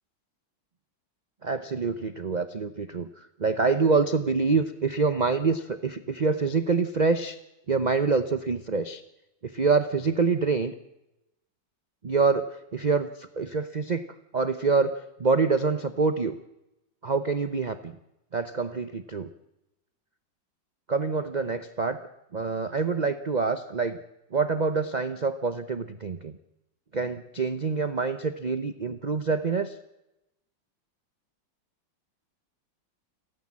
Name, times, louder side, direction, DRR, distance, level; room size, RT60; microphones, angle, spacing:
voice 1, 1.4-7.4 7.7-9.0 9.4-10.7 12.0-12.5 12.7-14.0 14.3-16.4 17.0-17.9 18.3-19.3 20.9-22.0 22.3-24.0 24.3-26.4 26.9-29.7, right 4 dB, 45° right, 10 dB, 0.5 m, -26 dB
30.0 x 13.5 x 7.5 m, 0.92 s
omnidirectional pair, 2.1 m